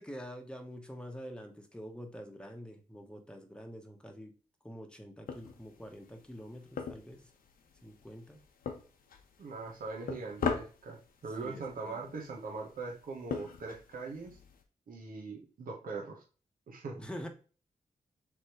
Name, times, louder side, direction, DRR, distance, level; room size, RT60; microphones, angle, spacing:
voice 1, 0.0-4.3 4.6-7.3 7.8-8.4 11.4-12.0 17.0-17.3, equal, 5° left, 4 dB, 1.1 m, -46 dB
sound 1, 5.3-14.6, left 6 dB, 80° left, 0.7 m, -42 dB
voice 2, 9.4-14.4 14.9-16.2 16.7-17.0, right 4 dB, 75° right, 0 dB, 1.2 m, -41 dB
3.6 x 3.1 x 4.4 m, 0.36 s
cardioid pair, 50°, 15 cm